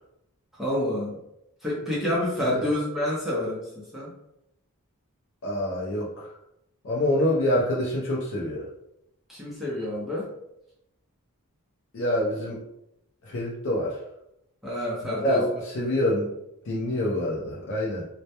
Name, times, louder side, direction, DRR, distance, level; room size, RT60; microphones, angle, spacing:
voice 1, 0.6-1.2 1.6-3.6 3.9-4.1 9.3-10.3 14.6-15.4, left 1 dB, ahead, -7 dB, 0.5 m, -28 dB
voice 2, 5.4-6.3 6.8-8.6 11.9-12.6 13.3-14.0 15.2-16.4 16.6-18.1, left 1 dB, 60° left, -5 dB, 0.5 m, -26 dB
2.1 x 2.1 x 2.8 m, 0.82 s
head